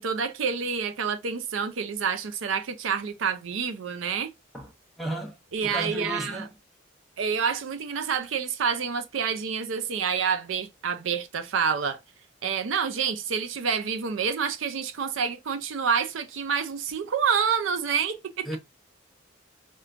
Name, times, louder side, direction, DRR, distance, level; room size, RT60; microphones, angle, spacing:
voice 1, 0.0-4.3 5.5-6.5 7.2-12.0 12.4-18.5, right 6 dB, 80° right, 0.5 m, -28 dB
voice 2, 5.0-6.5 18.4-18.6, right 1 dB, ahead, 0.7 m, -34 dB
4.4 x 2.2 x 2.5 m
head